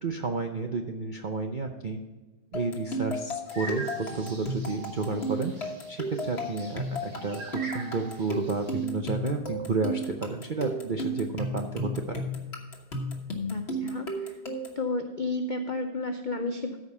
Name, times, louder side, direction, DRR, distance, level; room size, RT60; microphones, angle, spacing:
voice 1, 0.0-2.0 2.5-12.2, right 3 dB, 65° right, 4 dB, 0.4 m, -31 dB
sound 1, 2.5-14.8, right 1 dB, 40° left, 1.5 m, -34 dB
sound 2, 3.5-8.8, right 2 dB, 85° right, 3.5 m, -43 dB
voice 2, 13.5-14.4 14.8-16.8, left 2 dB, 70° left, 5 dB, 0.4 m, -32 dB
13.5 x 5.2 x 5.4 m, 1.2 s
omnidirectional pair, 1.8 m